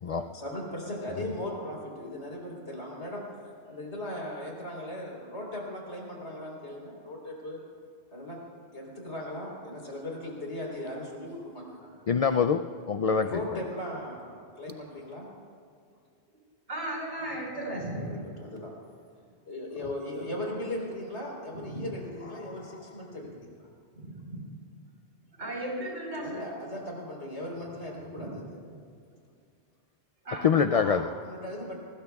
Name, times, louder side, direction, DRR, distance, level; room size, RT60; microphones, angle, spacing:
voice 1, 0.1-7.6 8.1-8.4 8.7-12.1 13.2-15.3 17.6-17.7 18.0-18.7 19.5-23.5 26.2-28.6 30.7-31.8, left 1 dB, 85° left, -2 dB, 4.2 m, -38 dB
voice 2, 12.1-13.3 30.4-31.1, left 6 dB, 65° left, 8 dB, 0.3 m, -24 dB
voice 3, 16.7-18.2 21.6-21.9 24.0-24.4 25.4-26.4 28.2-28.3 30.2-30.5, right 1 dB, 85° right, -2 dB, 4.8 m, -35 dB
24.5 x 20.0 x 2.4 m, 2.3 s
omnidirectional pair, 1.1 m